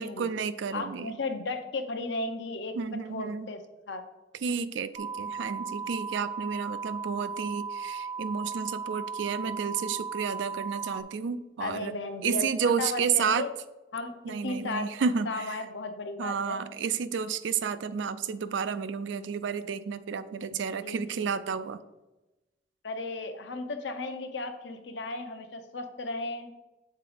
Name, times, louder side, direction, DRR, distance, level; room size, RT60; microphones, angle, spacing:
voice 1, 0.0-1.2 2.8-3.5 4.4-11.9 12.2-13.5 14.2-15.6 16.2-21.8, right 6 dB, 85° right, 13 dB, 0.4 m, -31 dB
voice 2, 0.7-2.7 3.1-3.6 3.9-4.0 11.6-13.5 13.9-14.1 14.4-14.9 15.3-16.6 20.6-21.2 22.8-26.5, left 3 dB, 75° left, 7 dB, 0.7 m, -35 dB
sound 1, 4.9-11.0, right 5 dB, 20° right, 0.5 m, -36 dB
6.6 x 3.9 x 4.9 m, 1.1 s
head